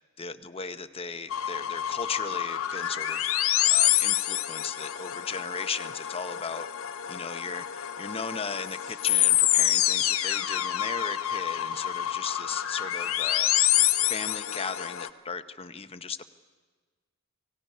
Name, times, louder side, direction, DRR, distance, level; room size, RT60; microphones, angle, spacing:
voice 1, 0.2-3.3 3.7-6.7 7.1-13.5 14.1-16.3, left 5 dB, 25° left, 9 dB, 0.7 m, -36 dB
sound 1, 1.3-15.1, left 13 dB, 75° left, 0.8 m, -27 dB
29.5 x 18.0 x 5.5 m, 1.4 s
head